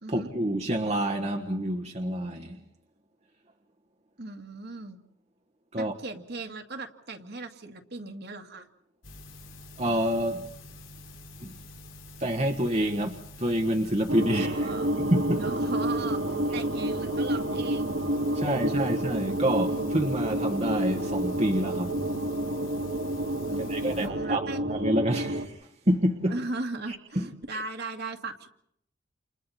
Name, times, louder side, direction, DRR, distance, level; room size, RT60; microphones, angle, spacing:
voice 1, 0.1-2.6 5.7-5.9 9.8-10.5 11.4-11.5 12.2-14.7 15.0-15.4 18.3-22.0 23.6-26.3 26.9-27.6, right 1 dB, 35° right, 3 dB, 1.3 m, -28 dB
voice 2, 4.2-5.0 5.7-8.7 14.3-14.9 15.4-16.2 16.5-17.9 18.3-19.0 23.5-24.6 26.3-28.5, right 3 dB, 55° right, 4 dB, 2.1 m, -38 dB
sound 1, 9.0-24.1, left 2 dB, 90° left, 3.8 m, -47 dB
sound 2, 14.1-25.4, right 1 dB, 90° right, 2.4 m, -29 dB
29.5 x 29.0 x 4.3 m, 0.71 s
head